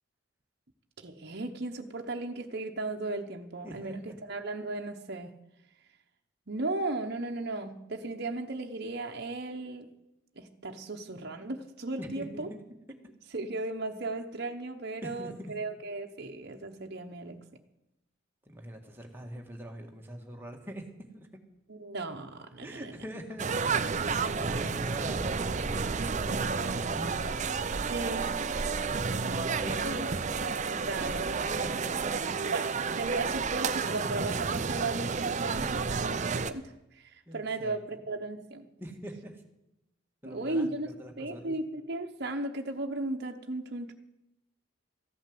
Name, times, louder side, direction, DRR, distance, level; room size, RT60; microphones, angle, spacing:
voice 1, 1.0-5.3 6.5-9.9 10.4-12.5 13.3-17.4 21.7-22.9 27.9-29.5 29.8-30.1 30.4-31.3 31.6-31.7 32.5-32.7 32.9-38.7 40.2-40.9 41.2-43.9, right 2 dB, 50° right, 3 dB, 1.0 m, -36 dB
voice 2, 3.6-4.2 12.0-12.6 15.0-15.5 18.5-20.9 21.1-21.3 22.6-23.5 23.8-27.3 29.6-30.2 31.0-32.1 37.3-38.0 38.8-39.4 40.2-41.5, right 1 dB, 10° right, 1 dB, 1.7 m, -43 dB
sound 1, 23.4-36.5, right 5 dB, 35° right, 0.6 m, -31 dB
14.5 x 8.8 x 7.7 m, 0.90 s
head